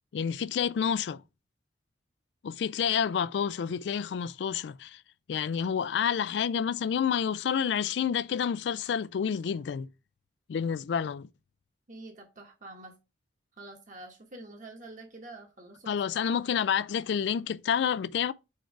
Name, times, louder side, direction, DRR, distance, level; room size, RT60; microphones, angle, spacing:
voice 1, 0.1-1.2 2.4-5.0 5.3-9.9 10.5-11.3 15.9-18.3, left 7 dB, 65° left, 0.3 m, -29 dB
voice 2, 11.9-12.9 13.6-15.9 16.3-16.4, right 2 dB, 45° right, 1.2 m, -47 dB
4.7 x 4.5 x 4.6 m
head